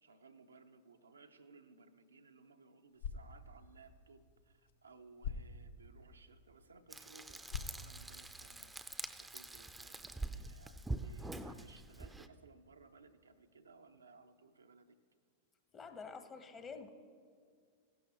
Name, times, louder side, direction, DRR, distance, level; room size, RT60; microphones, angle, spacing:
voice 1, 0.0-8.7 9.2-15.0, right 4 dB, 90° right, 6 dB, 0.6 m, -61 dB
sound 1, 2.8-8.8, left 5 dB, 65° left, 0.6 m, -48 dB
Frying (food), 6.9-12.3, right 2 dB, 5° right, 0.5 m, -45 dB
voice 2, 15.7-16.9, left 5 dB, 25° left, 8 dB, 0.9 m, -48 dB
15.5 x 12.0 x 3.0 m, 2.2 s
hypercardioid pair, 95°, 0 cm